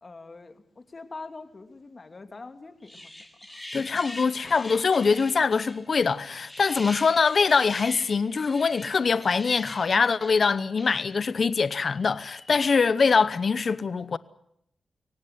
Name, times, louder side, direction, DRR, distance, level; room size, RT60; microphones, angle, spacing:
voice 1, 0.0-3.1 3.5-3.9, left 3 dB, 45° left, 2.8 m, -44 dB
sound 1, 2.8-11.3 11.9-12.6, left 1 dB, 15° left, 7.4 m, -43 dB
voice 2, 3.7-14.2, left 5 dB, 60° left, 0.9 m, -23 dB
24.5 x 18.0 x 9.5 m
cardioid pair, 50°, 0 cm